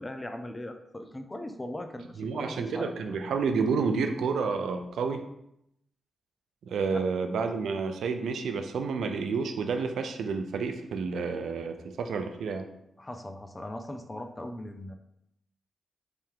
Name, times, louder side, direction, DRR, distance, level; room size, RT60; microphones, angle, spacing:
voice 1, 0.0-2.9 6.9-7.0 13.0-15.0, left 1 dB, 20° left, 7 dB, 0.5 m, -39 dB
voice 2, 2.2-5.2 6.6-12.7, right 5 dB, 80° right, 6 dB, 0.4 m, -30 dB
3.3 x 2.7 x 3.7 m, 0.78 s
cardioid pair, 55°, 0 cm